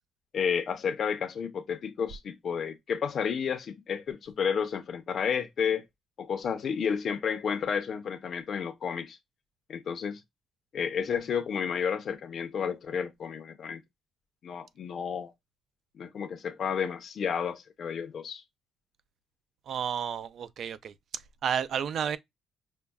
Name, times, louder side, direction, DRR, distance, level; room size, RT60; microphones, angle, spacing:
voice 1, 0.3-5.9 6.2-9.2 9.7-10.2 10.7-13.8 14.4-15.3 15.9-18.4, left 7 dB, 45° left, 0.6 m, -31 dB
voice 2, 19.7-20.9 21.4-22.2, right 8 dB, 50° right, 0.3 m, -31 dB
5.2 x 2.2 x 2.2 m
cardioid pair, 160°, 0 cm